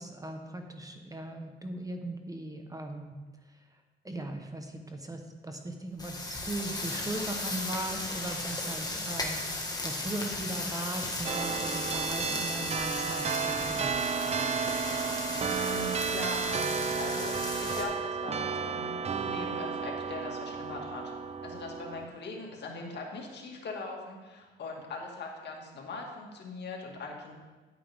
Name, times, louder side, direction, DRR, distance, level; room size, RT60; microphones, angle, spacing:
voice 1, 0.0-3.2 4.0-13.9, right 1 dB, 15° right, 5 dB, 1.0 m, -38 dB
sound 1, 6.0-17.8, left 2 dB, 20° left, 1.7 m, -36 dB
sound 2, 11.2-22.1, right 6 dB, 35° right, 0.5 m, -33 dB
voice 2, 15.5-18.9 19.2-21.1 21.4-27.3, left 3 dB, 60° left, 0 dB, 2.0 m, -41 dB
10.5 x 9.0 x 3.6 m, 1.3 s
cardioid pair, 90°, 20 cm